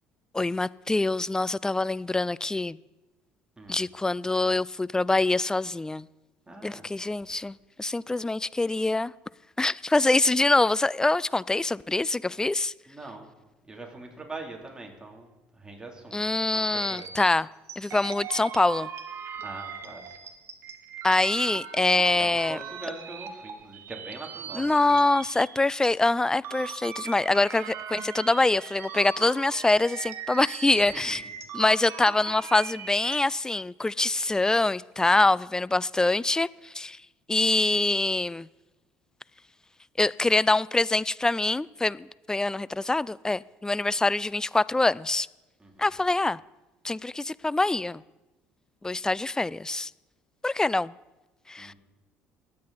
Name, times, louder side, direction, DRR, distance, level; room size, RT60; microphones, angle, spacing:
voice 1, 0.3-2.8 3.7-6.1 6.6-9.1 9.6-12.7 16.1-17.5 17.8-18.9 21.0-22.6 24.5-31.2 31.5-37.0 37.3-38.5 40.0-45.3 45.8-46.4 46.8-48.0 48.8-49.9 50.4-50.9 51.5-51.7, left 2 dB, 15° left, 0.3 m, -25 dB
voice 2, 6.5-6.9 12.9-13.3 13.7-15.3 15.5-16.2 16.5-17.1 19.4-20.2 22.2-25.0 30.9-31.3 45.6-45.9 51.6-51.7, right 2 dB, 15° right, 3.2 m, -42 dB
sound 1, 16.6-25.9 26.3-33.2, right 8 dB, 55° right, 1.4 m, -40 dB
22.5 x 8.5 x 4.2 m
hypercardioid pair, 65°, 5 cm